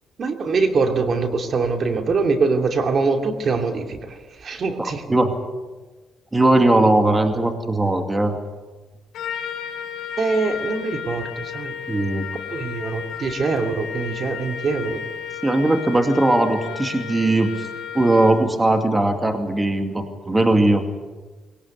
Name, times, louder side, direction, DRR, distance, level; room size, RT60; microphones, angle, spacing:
voice 1, 0.2-5.0 10.2-11.7 12.5-15.0, right 4 dB, 50° right, 5 dB, 2.7 m, -23 dB
voice 2, 4.8-5.3 6.3-8.4 11.9-12.3 15.4-17.7 17.9-20.9, right 2 dB, 20° right, 5 dB, 2.2 m, -19 dB
Trumpet, 9.1-18.5, left 8 dB, 80° left, 4.6 m, -33 dB
22.0 x 18.0 x 8.2 m, 1.3 s
cardioid pair, 90°, 0 cm